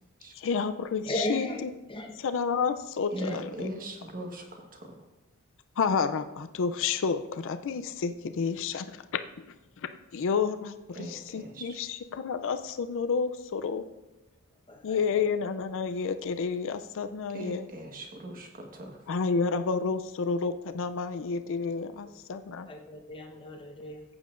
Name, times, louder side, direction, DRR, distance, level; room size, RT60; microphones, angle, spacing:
voice 1, 0.3-1.7 2.2-3.7 5.8-13.9 14.8-17.7 19.1-22.7, left 5 dB, 60° left, 9 dB, 0.4 m, -30 dB
voice 2, 1.1-1.6 1.9-2.2 3.2-3.4 14.7-15.3 22.7-24.0, left 1 dB, 25° left, 2 dB, 1.0 m, -36 dB
voice 3, 3.1-4.9 10.9-11.7 17.3-19.0, right 1 dB, 40° right, 2 dB, 1.4 m, -39 dB
14.5 x 8.7 x 2.5 m, 1.0 s
head